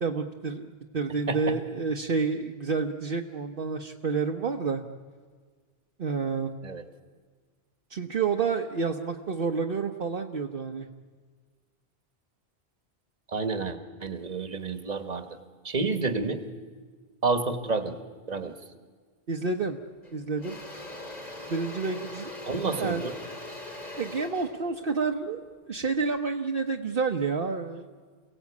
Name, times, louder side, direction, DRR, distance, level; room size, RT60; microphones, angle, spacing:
voice 1, 0.0-4.8 6.0-6.5 7.9-10.9 19.3-19.8 20.1-20.6 21.5-22.3 22.8-23.1 24.0-27.8, right 4 dB, 60° right, 3 dB, 1.1 m, -29 dB
voice 2, 13.3-15.3 15.6-16.4 17.2-17.9 18.3-18.5 22.5-23.1, right 4 dB, 40° right, 8 dB, 1.5 m, -29 dB
Engine / Drill, 19.5-19.7 20.0-26.2, left 1 dB, 40° left, 3.7 m, -42 dB
28.5 x 17.5 x 8.4 m, 1.5 s
omnidirectional pair, 1.1 m